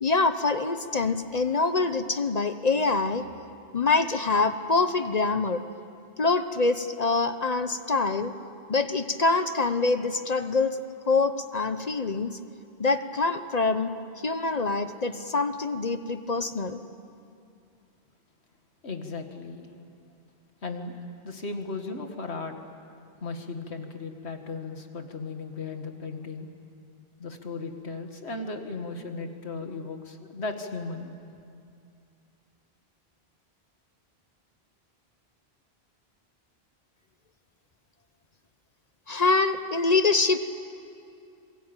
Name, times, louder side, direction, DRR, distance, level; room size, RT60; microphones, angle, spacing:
voice 1, 0.0-3.3 3.7-5.6 6.2-8.3 8.7-10.8 11.1-12.4 12.8-16.8 39.1-40.4, left 3 dB, 40° left, 10 dB, 0.9 m, -25 dB
voice 2, 18.8-19.7 20.6-20.9 21.2-22.5 23.2-26.5 27.2-31.1, left 3 dB, 85° left, 5 dB, 2.1 m, -36 dB
27.0 x 22.0 x 8.9 m, 2.5 s
omnidirectional pair, 1.1 m